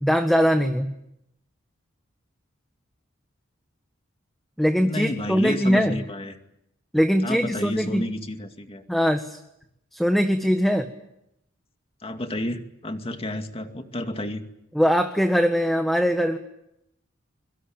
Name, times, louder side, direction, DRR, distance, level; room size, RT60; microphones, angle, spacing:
voice 1, 0.0-0.9 4.6-6.0 6.9-8.1 8.9-9.4 9.9-10.9 14.7-16.4, equal, ahead, 6 dB, 1.5 m, -21 dB
voice 2, 4.8-6.4 7.2-8.8 12.0-14.4, left 1 dB, 30° left, 6 dB, 2.3 m, -30 dB
25.0 x 24.0 x 8.9 m, 0.80 s
head